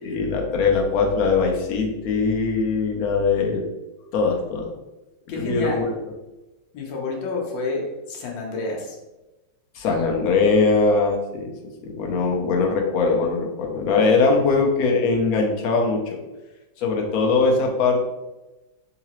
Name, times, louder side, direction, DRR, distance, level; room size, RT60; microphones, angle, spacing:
voice 1, 0.0-3.6 4.1-4.7 5.3-5.9 9.7-11.5 11.8-16.2 16.8-18.1, left 4 dB, 65° left, 1 dB, 1.0 m, -21 dB
voice 2, 5.3-5.9 6.7-9.0 14.4-14.5, left 3 dB, 85° left, -1 dB, 1.5 m, -29 dB
3.8 x 2.9 x 2.9 m, 1.1 s
omnidirectional pair, 2.0 m